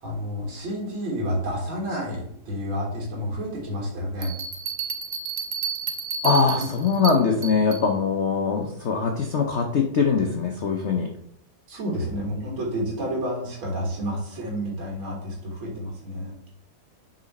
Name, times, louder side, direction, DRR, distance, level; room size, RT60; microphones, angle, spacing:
voice 1, 0.0-4.3 6.5-6.7 11.7-16.3, equal, 85° right, -2 dB, 2.4 m, -30 dB
Bell, 4.2-7.9, right 6 dB, 60° right, 1.3 m, -31 dB
voice 2, 6.2-11.1, left 5 dB, 80° left, 2 dB, 0.6 m, -22 dB
6.3 x 4.2 x 4.2 m, 0.70 s
omnidirectional pair, 2.2 m